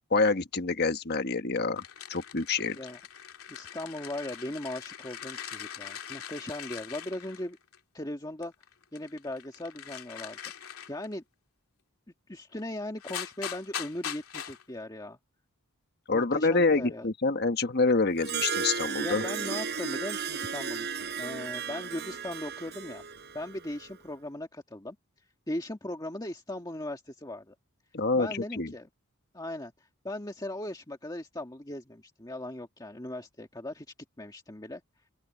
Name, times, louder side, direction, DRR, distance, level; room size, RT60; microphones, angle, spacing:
voice 1, 0.1-1.8 2.1-2.8 16.1-19.2 27.9-28.7, left 3 dB, 50° left, 1.3 m, -26 dB
sound 1, 1.8-7.8 8.4-11.1 12.6-12.7 13.0-14.6, left 9 dB, 85° left, 2.5 m, -42 dB
voice 2, 3.5-7.6 7.9-8.5 8.9-11.2 12.3-15.2 16.1-17.1 19.0-23.0 23.3-25.0 25.5-27.5 28.1-28.9 29.3-29.7 30.0-33.9 34.2-34.8, left 1 dB, 20° left, 1.8 m, -38 dB
Harp, 18.2-23.9, right 6 dB, 50° right, 4.2 m, -34 dB
open air
head